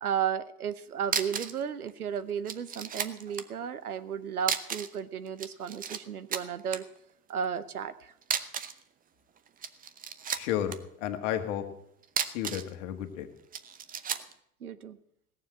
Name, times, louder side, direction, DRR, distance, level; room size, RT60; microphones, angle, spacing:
voice 1, 0.0-6.9 7.3-8.1 14.6-15.0, right 8 dB, 80° right, 14 dB, 0.9 m, -34 dB
sound 1, 0.7-0.8 1.0-1.6 1.9-2.0 2.5-3.5 4.4-5.0 5.3-6.0 6.3-6.8 8.2-8.8 9.5-10.8 12.0-12.7 13.5-14.3, right 7 dB, 20° right, 0.7 m, -33 dB
voice 2, 10.3-11.6 12.3-13.3, left 11 dB, 55° left, 7 dB, 1.7 m, -32 dB
17.0 x 7.2 x 7.7 m, 0.74 s
figure-of-eight pair, 80°, 43 cm